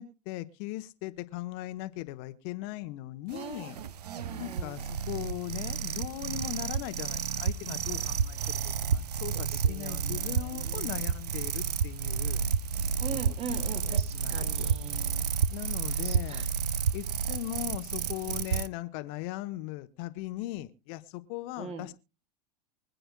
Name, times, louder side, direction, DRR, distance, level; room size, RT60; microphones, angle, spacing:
voice 1, 0.0-3.8 4.4-12.4 13.1-13.2 13.6-14.7 15.5-16.4 16.9-21.9, left 16 dB, 45° left, 1.0 m, -39 dB
voice 2, 3.3-4.8 8.8-10.9 13.0-15.3 15.6-16.5 21.6-21.9, right 4 dB, 30° right, 1.9 m, -42 dB
sound 1, 3.3-18.7, right 7 dB, 70° right, 0.7 m, -31 dB
24.5 x 9.1 x 2.2 m
figure-of-eight pair, 90°, 21 cm